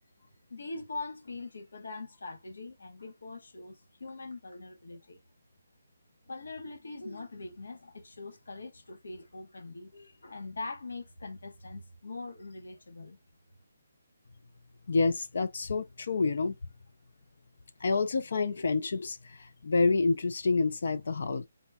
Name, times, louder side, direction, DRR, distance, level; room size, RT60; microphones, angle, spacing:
voice 1, 0.2-5.2 6.3-13.2, left 3 dB, 85° left, 1.3 m, -42 dB
voice 2, 14.9-16.6 17.8-21.5, left 3 dB, 60° left, 0.5 m, -28 dB
4.1 x 2.4 x 3.5 m
hypercardioid pair, 170°, 0 cm